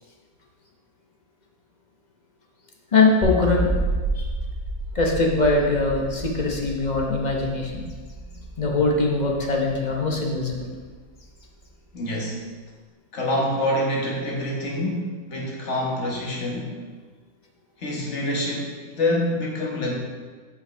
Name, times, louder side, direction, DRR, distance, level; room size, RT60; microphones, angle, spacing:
voice 1, 2.9-3.7 4.1-4.3 4.9-7.8 8.6-10.7, left 3 dB, 35° left, 0 dB, 0.9 m, -22 dB
sound 1, 3.2-10.4, right 1 dB, 10° right, 1.9 m, -30 dB
voice 2, 11.9-12.4 13.1-16.7 17.8-19.9, left 1 dB, 55° left, -3 dB, 1.6 m, -26 dB
7.7 x 5.3 x 3.3 m, 1.4 s
omnidirectional pair, 1.5 m